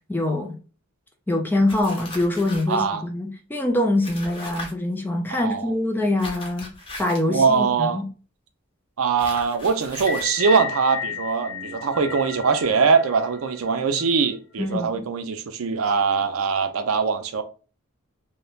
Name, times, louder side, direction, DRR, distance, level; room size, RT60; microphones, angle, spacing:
voice 1, 0.1-0.5 1.3-6.7 7.0-8.1 14.6-15.0, left 1 dB, 10° left, 0.3 m, -24 dB
sound 1, 1.7-2.7 4.0-4.7 6.2-7.3 9.2-10.3, left 2 dB, 25° left, 0.7 m, -38 dB
voice 2, 2.7-3.1 5.3-5.7 7.3-8.0 9.0-17.4, right 5 dB, 75° right, 0.4 m, -22 dB
sound 2, 9.9-14.3, left 6 dB, 90° left, 0.6 m, -34 dB
3.1 x 2.1 x 2.3 m
head